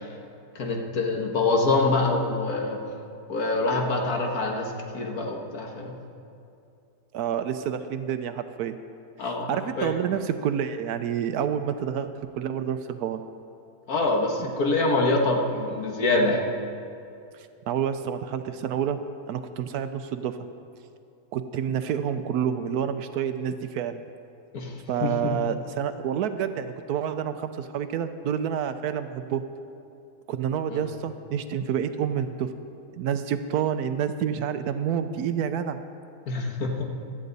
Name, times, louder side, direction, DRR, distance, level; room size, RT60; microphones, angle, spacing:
voice 1, 0.6-2.8 3.3-5.9 9.2-9.5 9.8-9.9 13.9-16.4 24.5-24.7 25.0-25.4 30.7-30.8 36.3-36.8, left 2 dB, 65° left, 1 dB, 1.9 m, -25 dB
voice 2, 7.1-8.8 9.2-13.2 14.4-14.5 17.3-20.4 21.3-24.0 24.9-29.4 30.3-32.5 33.0-35.8, right 8 dB, 75° right, 9 dB, 1.1 m, -28 dB
16.0 x 12.5 x 4.0 m, 2.5 s
omnidirectional pair, 1.7 m